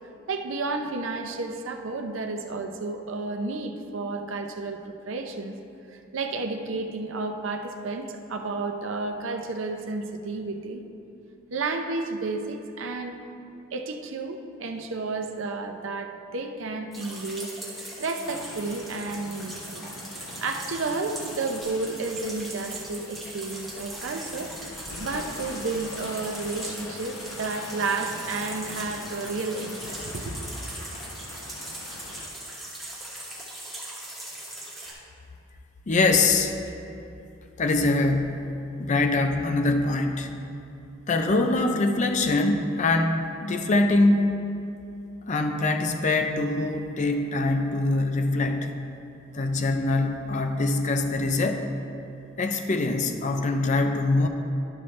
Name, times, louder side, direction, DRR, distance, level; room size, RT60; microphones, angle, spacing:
voice 1, 0.3-5.6 5.9-10.8 11.5-13.2 13.7-19.8 20.4-24.5 25.0-30.5, right 3 dB, 65° right, 5 dB, 0.6 m, -32 dB
sound 1, 16.9-34.9, right 1 dB, ahead, 1.4 m, -40 dB
sound 2, 18.2-32.3, left 2 dB, 90° left, 0.6 m, -43 dB
voice 2, 35.9-36.5 37.6-38.5 38.8-40.3 41.1-44.3 45.3-48.7 49.3-51.6 52.4-54.3, left 2 dB, 35° left, 5 dB, 0.5 m, -23 dB
12.0 x 5.6 x 3.2 m, 2.8 s
head